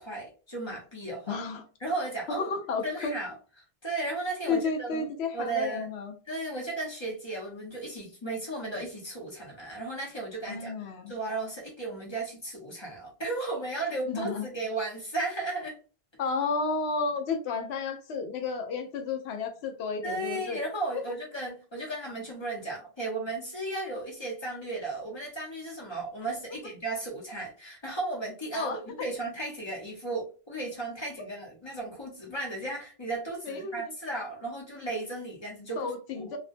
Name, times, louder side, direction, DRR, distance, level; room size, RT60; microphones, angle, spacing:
voice 1, 0.0-1.4 1.8-2.5 2.8-3.3 3.8-5.1 5.3-5.9 6.3-10.7 11.1-15.8 20.0-35.9 36.2-36.4, right 2 dB, 30° left, -2 dB, 0.8 m, -35 dB
voice 2, 1.3-1.6 2.3-3.1 4.5-6.1 10.5-11.1 14.1-14.5 16.2-20.6 28.5-28.8 33.4-33.8 35.8-36.4, left 4 dB, 85° left, 6 dB, 0.8 m, -32 dB
2.5 x 2.1 x 2.5 m, 0.36 s
omnidirectional pair, 1.0 m